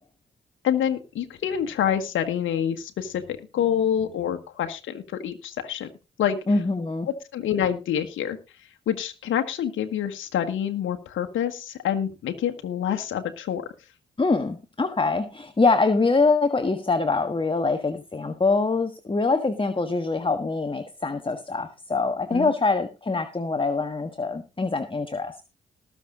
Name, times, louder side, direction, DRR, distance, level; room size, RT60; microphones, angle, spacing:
voice 1, 0.6-5.9 6.2-6.4 7.3-8.4 8.9-13.6 22.3-22.5, left 9 dB, 70° left, 6 dB, 1.4 m, -27 dB
voice 2, 6.5-7.1 14.2-25.4, left 3 dB, 25° left, 8 dB, 1.4 m, -24 dB
19.5 x 6.6 x 3.8 m, 0.29 s
hypercardioid pair, 45°, 21 cm